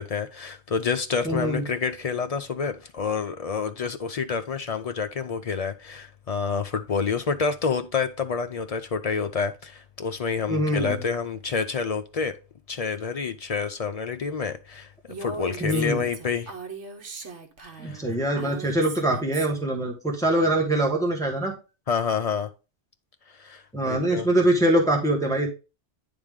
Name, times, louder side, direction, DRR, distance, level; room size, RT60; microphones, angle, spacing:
voice 1, 0.0-12.3 12.7-14.9 15.2-16.5 17.8-18.0 21.9-22.5 23.4-24.3, left 5 dB, 60° left, 0.4 m, -28 dB
voice 2, 1.2-1.6 10.5-11.0 15.6-16.0 17.8-21.5 23.7-25.5, right 1 dB, 5° left, 1.2 m, -23 dB
Female speech woman speaking, 15.1-19.7, right 4 dB, 70° right, 1.3 m, -39 dB
9.7 x 3.5 x 3.6 m
omnidirectional pair, 1.2 m